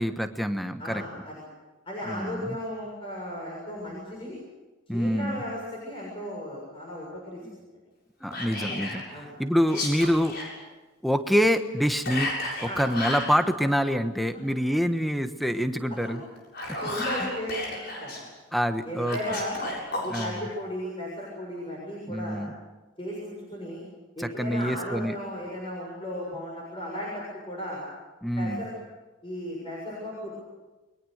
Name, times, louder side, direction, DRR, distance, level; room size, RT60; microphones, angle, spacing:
voice 1, 0.0-1.0 2.1-2.6 4.9-5.4 7.4-7.6 8.2-10.4 11.0-12.3 12.6-16.2 18.5-19.2 20.1-20.4 22.1-22.5 24.2-25.2 28.2-28.6, equal, ahead, 7 dB, 1.2 m, -26 dB
voice 2, 0.8-1.4 1.9-4.4 4.9-7.5 8.6-8.8 9.1-9.3 12.6-12.8 15.9-16.0 16.8-18.3 18.9-19.8 20.0-22.4 23.0-23.8 24.2-27.8 28.4-28.7 29.2-30.3, equal, 25° left, -3 dB, 6.8 m, -35 dB
Whispering, 8.3-9.0 9.6-10.5 12.0-13.3 16.4-18.2 19.0-20.3, left 2 dB, 50° left, 7.6 m, -33 dB
30.0 x 23.0 x 6.6 m, 1.2 s
head